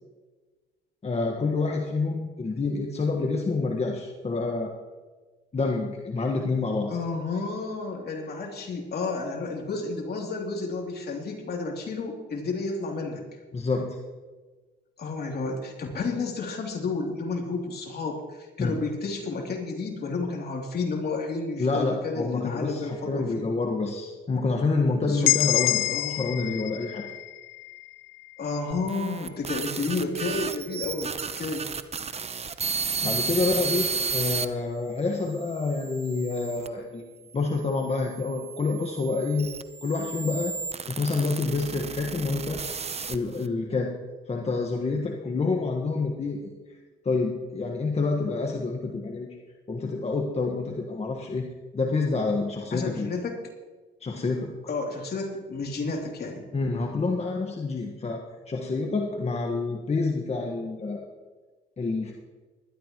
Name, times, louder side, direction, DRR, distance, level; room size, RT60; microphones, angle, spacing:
voice 1, 1.0-4.7 5.5-6.9 13.5-14.0 18.6-18.7 21.6-27.0 33.0-37.1 37.3-39.5 39.8-40.5 40.9-42.6 43.1-44.0 44.3-46.8 47.0-49.3 49.7-53.1 54.0-54.5 56.5-61.1 61.8-62.1, left 3 dB, 30° left, 1 dB, 1.5 m, -28 dB
voice 2, 6.9-13.2 15.0-23.5 25.1-25.3 25.9-26.3 28.4-31.7 52.7-53.4 54.7-56.5, left 3 dB, 55° left, 1 dB, 3.1 m, -31 dB
sound 1, 25.2-29.1, left 18 dB, 85° left, 0.5 m, -28 dB
sound 2, 28.7-34.5 35.1-36.7 37.5-43.5, right 5 dB, 30° right, 0.8 m, -33 dB
20.0 x 12.5 x 3.1 m, 1.3 s
cardioid pair, 90°, 20 cm